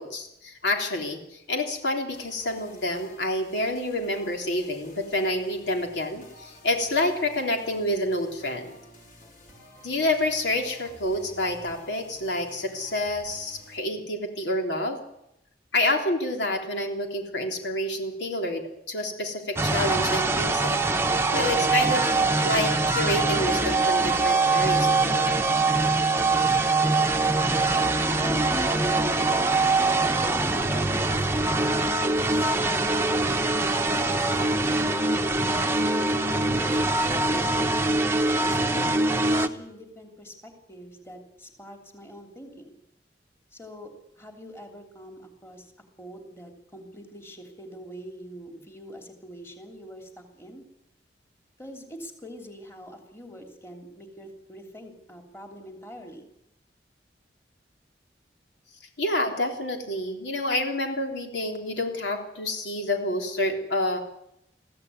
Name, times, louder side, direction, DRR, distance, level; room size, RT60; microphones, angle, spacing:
voice 1, 0.0-8.7 9.8-15.0 15.7-25.4 59.0-64.0, left 1 dB, 80° left, 3 dB, 3.4 m, -28 dB
sound 1, 2.1-13.8, left 1 dB, 45° left, 4.9 m, -51 dB
sound 2, 19.6-39.5, right 3 dB, 15° right, 0.9 m, -23 dB
voice 2, 28.1-29.5 30.2-37.4 38.3-42.8 43.5-45.7 46.0-50.6 51.6-56.3, equal, 15° left, 3 dB, 3.0 m, -43 dB
22.5 x 15.0 x 9.6 m, 0.83 s
head